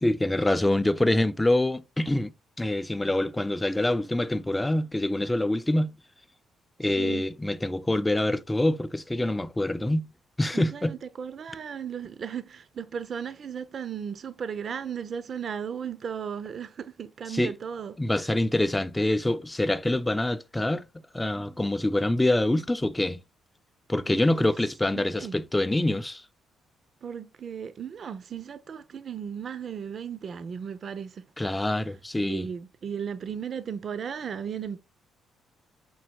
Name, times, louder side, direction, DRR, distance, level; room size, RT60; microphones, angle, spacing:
voice 1, 0.0-2.3 2.6-5.9 6.8-10.1 10.4-10.9 17.3-17.5 18.0-20.8 21.1-23.2 23.9-26.2 31.4-32.5, left 1 dB, 10° left, 0.6 m, -25 dB
voice 2, 6.9-7.3 10.5-18.3 24.0-24.4 24.9-25.4 27.0-31.8 32.2-34.8, right 7 dB, 50° right, 0.7 m, -36 dB
7.4 x 5.5 x 2.3 m
cardioid pair, 90°, 0 cm